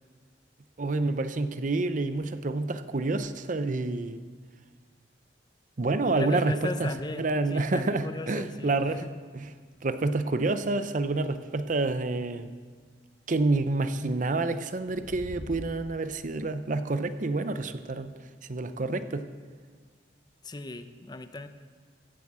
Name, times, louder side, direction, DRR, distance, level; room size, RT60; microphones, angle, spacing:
voice 1, 0.8-4.2 5.8-6.9 7.2-9.0 9.3-9.5 9.8-12.5 13.3-18.1 18.5-19.3, right 2 dB, 45° right, 11 dB, 0.6 m, -28 dB
voice 2, 6.1-9.1 20.4-21.5, left 2 dB, 25° left, 10 dB, 0.6 m, -36 dB
sound 1, 9.7-9.8 10.4-10.5 10.8-10.9 11.2-11.3 13.3-13.4 13.7-14.1 14.7-16.1, equal, 75° right, 4.7 m, -44 dB
16.0 x 7.7 x 7.4 m, 1.5 s
head